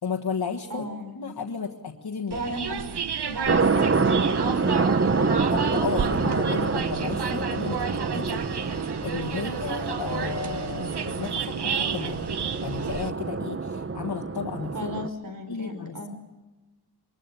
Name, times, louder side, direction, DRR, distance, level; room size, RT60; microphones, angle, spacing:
voice 1, 0.0-0.9 1.1-2.4 5.5-12.2 12.6-14.7 15.5-16.2, left 6 dB, 70° left, 0 dB, 1.5 m, -33 dB
voice 2, 0.7-1.2 2.3-2.9 3.2-4.7 5.1-5.3 14.7-16.1, right 1 dB, 55° right, 7 dB, 4.6 m, -36 dB
sound 1, 2.3-13.1, right 7 dB, 90° right, 1.0 m, -32 dB
sound 2, 3.5-15.1, right 4 dB, 35° right, 0.8 m, -27 dB
24.5 x 21.5 x 6.8 m, 1.1 s
wide cardioid pair, 90°, 39 cm